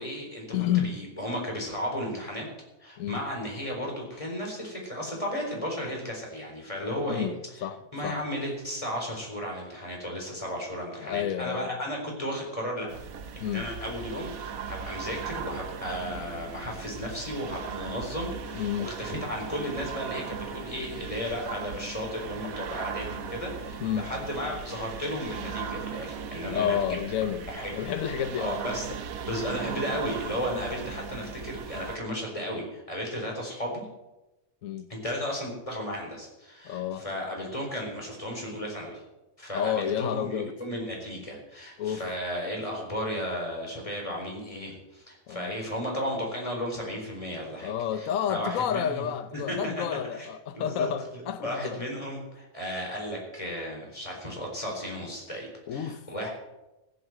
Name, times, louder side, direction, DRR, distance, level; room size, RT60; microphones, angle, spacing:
voice 1, 0.0-0.5 0.8-2.5 2.8-7.3 7.9-12.9 13.5-26.8 27.5-27.7 28.4-28.9 29.2-33.8 34.9-39.0 39.4-49.0 49.3-49.8 50.2-50.3 50.5-50.9 51.4-56.3, equal, 25° left, 4.2 m, -34 dB
voice 2, 0.5-0.9 3.0-3.2 7.1-8.2 11.0-11.7 13.4-13.7 18.5-18.9 23.8-24.1 26.5-27.5 27.7-28.6 34.6-34.9 36.6-37.1 39.5-40.5 41.8-42.1 45.3-45.5 47.6-51.8 55.7-56.1, left 9 dB, 75° left, 1.2 m, -30 dB
sound 1, 12.9-32.0, right 7 dB, 85° right, 1.4 m, -38 dB
15.5 x 8.0 x 7.7 m
omnidirectional pair, 1.5 m